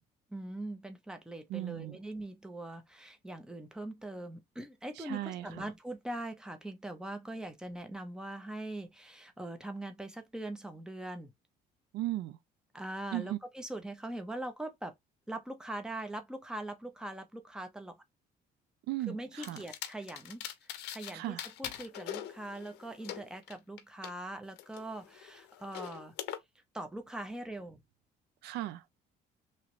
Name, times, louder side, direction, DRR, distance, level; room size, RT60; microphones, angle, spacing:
voice 1, 0.3-11.3 12.7-14.9 15.3-18.0 19.1-20.4 20.9-26.1 26.7-27.8, right 1 dB, 5° right, 0.7 m, -42 dB
voice 2, 1.5-2.0 5.0-5.7 11.9-12.4 13.1-13.4 18.9-19.6 21.1-21.4 28.4-28.8, right 15 dB, 80° right, 0.4 m, -36 dB
sound 1, 19.4-21.1 21.4-24.1 24.6-26.4, left 11 dB, 85° left, 0.6 m, -43 dB
3.1 x 2.4 x 3.0 m
cardioid pair, 110°, 17 cm